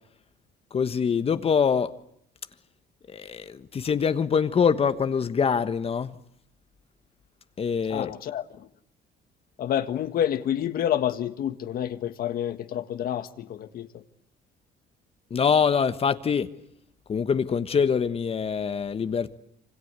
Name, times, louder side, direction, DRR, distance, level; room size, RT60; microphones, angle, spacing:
voice 1, 0.7-1.9 3.1-6.1 7.6-8.1 15.3-16.5 17.1-19.4, left 6 dB, 35° left, 1.3 m, -24 dB
voice 2, 7.9-8.7 9.6-14.0, left 10 dB, 60° left, 1.6 m, -28 dB
27.0 x 25.5 x 8.2 m
cardioid pair, 110°, 17 cm